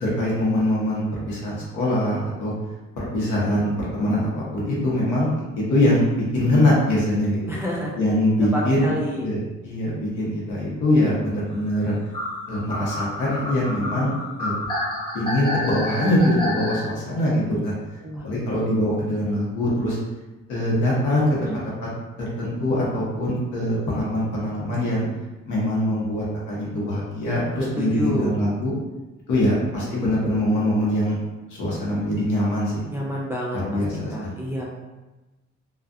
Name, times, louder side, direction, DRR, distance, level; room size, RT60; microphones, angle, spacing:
voice 1, 0.0-2.5 3.0-5.3 5.7-7.5 7.9-8.9 9.2-11.9 12.5-14.1 14.4-14.5 15.1-17.7 18.2-20.0 20.5-21.9 22.2-25.0 25.5-28.7 29.3-31.2 31.5-32.7 33.5-34.3, left 1 dB, 80° left, -6 dB, 0.9 m, -23 dB
voice 2, 7.5-8.0 8.5-9.4 17.5-17.6 18.0-18.3 21.1-21.6 27.8-28.4 32.9-33.8 34.1-34.6, equal, 10° right, -5 dB, 0.4 m, -29 dB
sound 1, 12.1-16.8, left 1 dB, 15° left, 0.7 m, -29 dB
2.4 x 2.2 x 2.5 m, 1.1 s
cardioid pair, 90°, 30 cm